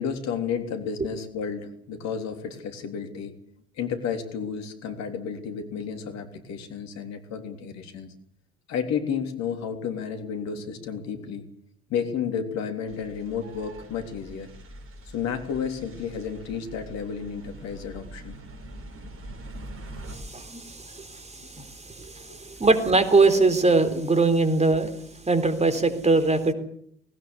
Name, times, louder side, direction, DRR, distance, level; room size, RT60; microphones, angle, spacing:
voice 1, 0.0-3.3 3.8-8.1 8.7-11.4 11.9-14.5 15.1-18.4 22.3-22.4, left 7 dB, 60° left, 6 dB, 3.5 m, -32 dB
sound 1, 12.9-20.2, right 1 dB, 45° right, 5.4 m, -43 dB
voice 2, 20.0-26.5, right 3 dB, 20° right, 9 dB, 3.9 m, -22 dB
20.0 x 19.0 x 8.2 m, 0.67 s
figure-of-eight pair, 55°, 31 cm